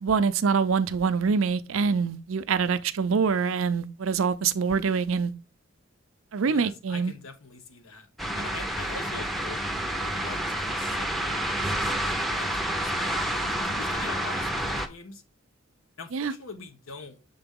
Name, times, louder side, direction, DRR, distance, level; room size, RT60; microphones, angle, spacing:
voice 1, 0.0-5.3 6.3-7.1 16.1-16.3, right 5 dB, 75° right, 0.5 m, -25 dB
voice 2, 6.5-8.1 8.3-9.6 9.9-15.2 16.0-17.2, left 4 dB, 85° left, 1.0 m, -43 dB
sound 1, 8.2-14.9, right 1 dB, ahead, 0.6 m, -29 dB
6.7 x 3.9 x 3.6 m
head